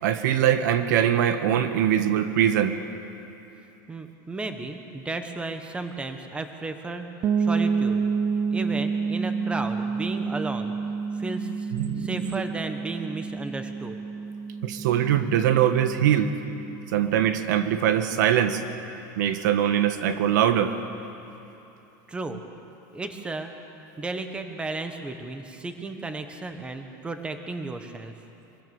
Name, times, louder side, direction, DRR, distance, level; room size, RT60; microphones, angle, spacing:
voice 1, 0.0-2.8 11.7-12.4 14.6-16.3 16.9-18.6 19.2-20.8, right 10 dB, 85° right, 9 dB, 1.4 m, -22 dB
voice 2, 3.9-7.0 7.4-8.0 8.5-10.7 11.2-11.7 12.0-14.0 22.1-22.4 22.9-23.5 24.0-28.2, right 3 dB, 10° right, 7 dB, 1.3 m, -34 dB
sound 1, 7.2-16.9, right 5 dB, 30° right, 0.6 m, -29 dB
25.0 x 16.5 x 7.0 m, 2.9 s
supercardioid pair, 145°, 10 cm